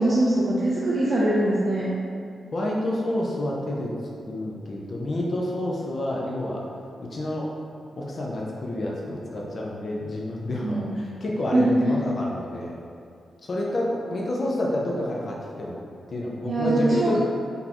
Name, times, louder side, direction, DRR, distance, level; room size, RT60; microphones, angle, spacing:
voice 1, 0.0-1.9 10.6-11.0 11.5-11.9 16.4-17.2, right 1 dB, 35° right, -6 dB, 0.4 m, -22 dB
voice 2, 2.5-3.9 4.3-6.7 7.0-7.5 8.0-12.7 13.4-15.8 16.1-17.2, left 1 dB, 40° left, -3 dB, 0.5 m, -29 dB
4.1 x 3.4 x 2.9 m, 2.4 s
wide cardioid pair, 175°, 0 cm